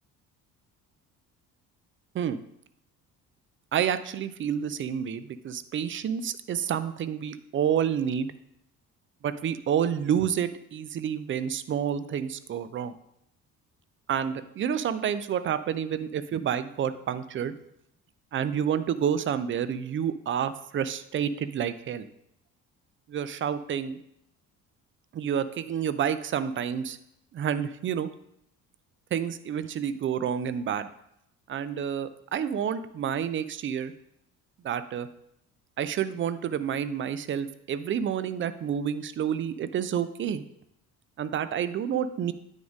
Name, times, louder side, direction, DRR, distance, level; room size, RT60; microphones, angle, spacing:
voice 1, 3.7-8.3 9.2-12.9 14.1-17.6 18.3-22.1 23.1-24.0 25.1-27.0 27.3-28.1 29.1-30.9 31.5-33.9 34.6-35.1 35.8-40.4 41.2-42.3, right 8 dB, 25° right, 13 dB, 0.5 m, -29 dB
9.2 x 3.7 x 5.0 m, 0.76 s
figure-of-eight pair, 50°, 46 cm